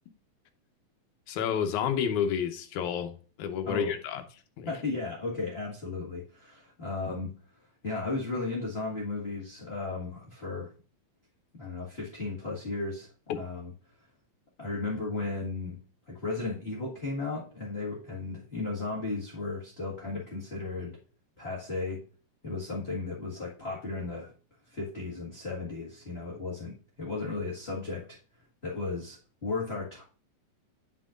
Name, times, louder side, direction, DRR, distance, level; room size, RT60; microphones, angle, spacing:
voice 1, 1.3-4.2 4.6-4.7, left 8 dB, 90° left, 2.3 m, -30 dB
voice 2, 4.7-7.3 7.8-10.7 11.6-13.1 13.3-13.7 14.6-15.8 16.1-21.0 21.4-22.0 22.4-24.3 24.7-28.2 28.6-30.0, left 3 dB, 25° left, 1.4 m, -35 dB
9.9 x 5.6 x 2.5 m
omnidirectional pair, 3.4 m